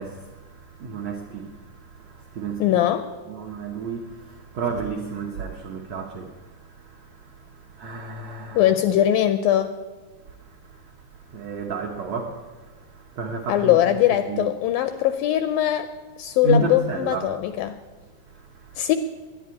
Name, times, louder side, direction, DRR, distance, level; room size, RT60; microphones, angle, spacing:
voice 1, 0.0-2.7 3.3-8.7 10.3-13.8 14.3-14.5 16.4-17.4 18.3-18.8, right 4 dB, 80° right, 1.5 m, -32 dB
voice 2, 2.6-3.1 8.6-9.7 13.5-15.9 16.2-17.8 18.8-18.9, left 12 dB, 85° left, 2.0 m, -21 dB
11.0 x 10.0 x 9.4 m
omnidirectional pair, 4.6 m